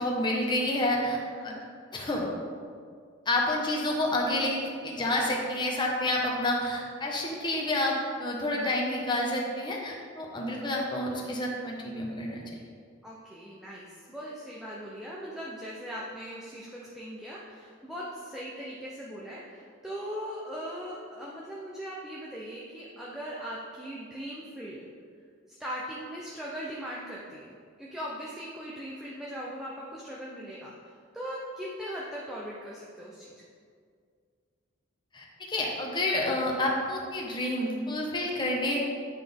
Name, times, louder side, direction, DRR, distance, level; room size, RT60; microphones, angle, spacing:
voice 1, 0.0-1.5 1.9-2.3 3.3-12.4 35.1-38.8, left 1 dB, 25° left, -2 dB, 1.0 m, -29 dB
voice 2, 1.3-1.7 8.5-8.8 13.0-24.9 25.6-33.3, equal, ahead, -6 dB, 0.6 m, -39 dB
9.8 x 4.0 x 3.6 m, 2.1 s
head